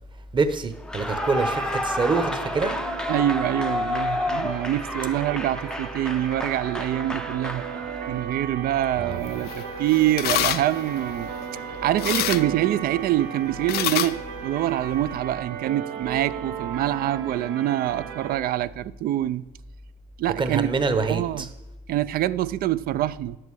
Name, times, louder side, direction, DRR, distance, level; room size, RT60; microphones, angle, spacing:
voice 1, 0.3-2.7 9.0-9.2 20.4-21.5, right 4 dB, 30° right, 1.0 m, -25 dB
Clapping / Cheering / Applause, 0.8-8.2, left 1 dB, 5° left, 0.5 m, -30 dB
sound 1, 1.1-18.4, right 8 dB, 85° right, 0.9 m, -36 dB
voice 2, 3.1-7.6 8.1-11.3 11.8-19.4 20.2-20.7 21.1-21.5 21.9-23.4, right 13 dB, 60° right, 0.4 m, -25 dB
sound 2, 9.1-15.2, left 13 dB, 70° left, 0.5 m, -31 dB
10.5 x 7.7 x 4.7 m
cardioid pair, 110°, 17 cm